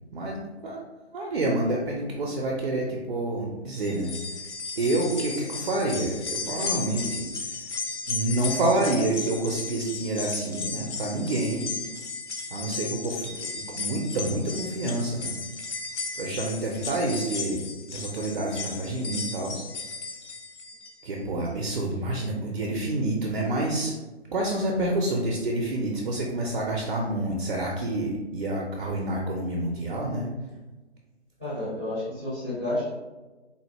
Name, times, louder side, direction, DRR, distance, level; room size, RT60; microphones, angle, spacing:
voice 1, 1.1-4.1 4.8-7.6 8.1-11.7 12.5-15.3 16.2-17.6 17.9-19.7 21.0-24.0 24.3-30.3, right 2 dB, 50° right, -1 dB, 0.5 m, -28 dB
sound 1, 3.7-21.1 21.5-21.6 22.6-22.7, left 4 dB, 85° left, 0.6 m, -35 dB
voice 2, 31.4-32.9, left 1 dB, 10° left, -12 dB, 0.4 m, -30 dB
3.7 x 2.1 x 2.8 m, 1.2 s
figure-of-eight pair, 150°, 34 cm